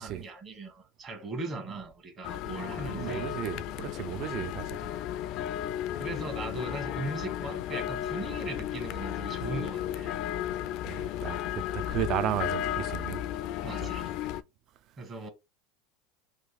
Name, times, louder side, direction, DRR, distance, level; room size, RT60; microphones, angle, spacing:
voice 1, 0.0-3.3 5.9-10.1 13.6-14.2 15.0-15.3, right 2 dB, 30° right, 1.2 m, -38 dB
sound 1, 2.2-14.4, left 11 dB, 55° left, 0.3 m, -34 dB
voice 2, 2.6-4.9 10.8-13.2 13.8-13.9, right 11 dB, 50° right, 0.4 m, -34 dB
3.1 x 2.4 x 3.6 m
supercardioid pair, 115°, 0 cm